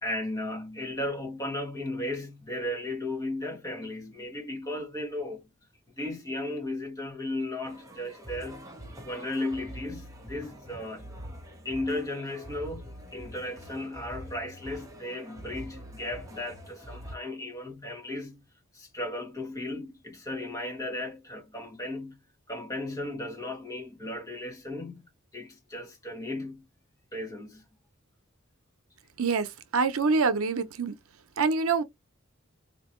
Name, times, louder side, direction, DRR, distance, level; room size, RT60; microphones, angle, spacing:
voice 1, 0.0-5.5 6.0-8.7 9.0-11.1 11.6-18.4 18.7-22.2 22.5-26.6 27.1-27.6, left 1 dB, 15° left, 1.5 m, -35 dB
sound 1, 7.6-17.2, equal, 15° right, 1.0 m, -45 dB
voice 2, 29.7-30.9 31.4-31.8, right 4 dB, 90° right, 0.7 m, -25 dB
4.3 x 2.9 x 3.0 m
head